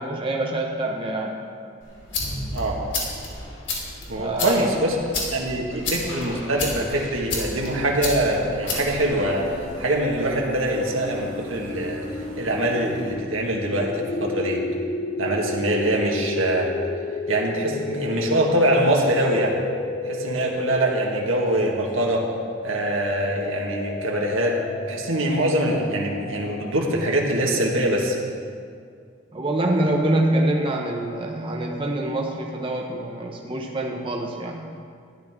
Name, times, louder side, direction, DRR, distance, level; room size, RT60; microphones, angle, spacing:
voice 1, 0.0-1.4 4.1-4.7 5.9-6.1 29.3-34.7, right 1 dB, 25° right, 0 dB, 0.9 m, -25 dB
sound 1, 1.8-9.9, left 2 dB, 65° left, 2.8 m, -32 dB
voice 2, 4.1-5.0 5.3-9.5 9.8-12.0 12.4-14.6 15.2-16.7 17.3-19.6 20.0-22.3 22.6-24.6 24.9-28.2, right 1 dB, 90° right, 0 dB, 1.6 m, -23 dB
sound 2, 7.3-13.1, right 1 dB, 70° right, 3.0 m, -42 dB
sound 3, 8.3-26.7, left 3 dB, 40° left, 0.3 m, -33 dB
13.0 x 11.0 x 3.6 m, 2.2 s
head